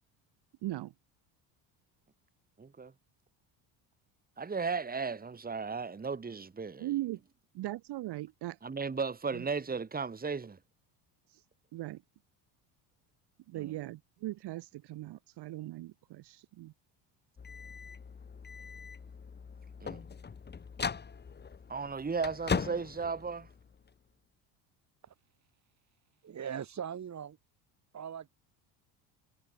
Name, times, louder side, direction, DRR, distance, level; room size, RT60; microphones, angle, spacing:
voice 1, 0.6-0.9 6.8-7.2 7.5-8.6 9.3-9.5 11.3-11.4 11.7-12.0 13.5-16.7, right 16 dB, 60° right, 1.9 m, -39 dB
voice 2, 2.6-2.9 4.4-6.9 8.6-10.6 13.5-13.7 19.8-20.0 21.7-23.5, right 5 dB, 20° right, 2.9 m, -35 dB
sound 1, 17.4-23.9, left 6 dB, 20° left, 1.6 m, -39 dB
voice 3, 26.2-27.4 27.9-28.3, right 8 dB, 35° right, 3.7 m, -40 dB
cardioid pair, 110°, 45 cm